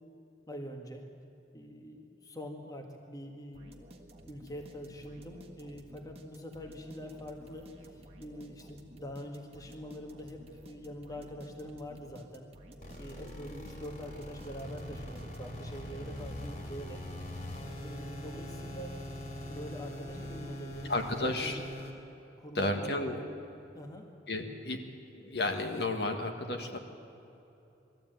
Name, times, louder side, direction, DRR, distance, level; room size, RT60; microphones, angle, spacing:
voice 1, 0.5-1.0 1.5-3.9 4.3-12.5 13.0-17.0 17.8-18.9 19.5-20.9 21.2-21.7 22.4-23.3 23.7-24.1, equal, 20° left, 3 dB, 1.6 m, -44 dB
sound 1, 3.5-15.7, right 1 dB, 35° right, 1.6 m, -54 dB
sound 2, 12.8-21.9, equal, 40° left, 2.9 m, -42 dB
voice 2, 20.9-21.6 22.5-23.2 24.3-24.8 25.1-26.8, left 2 dB, 60° left, 3 dB, 1.8 m, -32 dB
21.0 x 14.0 x 9.1 m, 2.9 s
head